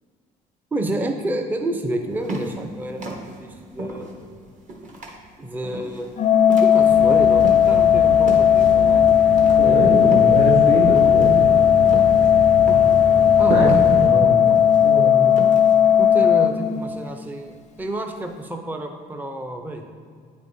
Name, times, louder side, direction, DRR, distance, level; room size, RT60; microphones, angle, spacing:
voice 1, 0.7-4.1 5.4-6.1 6.6-9.1 9.6-9.9 13.4-13.8 15.9-19.8, right 1 dB, 10° right, 4 dB, 0.5 m, -29 dB
sound 1, 2.1-7.9 8.2-16.0, right 1 dB, 45° right, 1.1 m, -34 dB
Organ, 6.2-17.2, left 9 dB, 45° left, 0.4 m, -16 dB
sound 2, 6.8-14.1, right 2 dB, 65° right, 1.6 m, -31 dB
voice 2, 9.6-11.5 13.5-14.5 14.8-15.3, right 2 dB, 85° right, -2 dB, 1.3 m, -23 dB
8.8 x 5.1 x 2.6 m, 2.1 s
cardioid pair, 110°, 17 cm